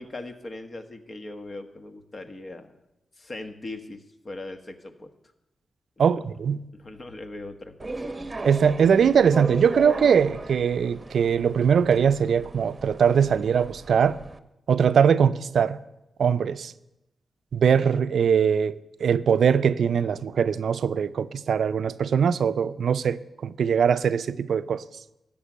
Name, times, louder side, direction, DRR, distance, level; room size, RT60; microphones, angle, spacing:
voice 1, 0.0-2.7 3.2-5.1 6.0-6.1 6.7-7.9, left 2 dB, 45° left, 1.3 m, -39 dB
voice 2, 6.0-6.6 8.4-14.2 14.7-15.8 16.2-16.7 17.5-24.8, right 7 dB, 75° right, 0.4 m, -21 dB
sound 1, 7.8-14.4, right 3 dB, 35° right, 0.8 m, -37 dB
13.0 x 5.3 x 8.6 m
cardioid pair, 55°, 0 cm